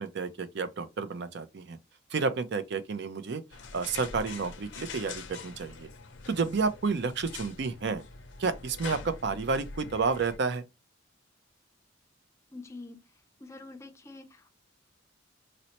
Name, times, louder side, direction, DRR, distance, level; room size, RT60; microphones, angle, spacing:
voice 1, 0.0-1.8 2.1-3.4 3.7-5.9 6.3-8.0 8.4-10.6, right 4 dB, 60° right, 0.5 m, -30 dB
sound 1, 3.5-10.4, left 4 dB, 65° left, 0.5 m, -44 dB
voice 2, 12.5-13.0 13.4-14.5, left 2 dB, 15° left, 0.4 m, -46 dB
4.1 x 2.1 x 2.8 m
head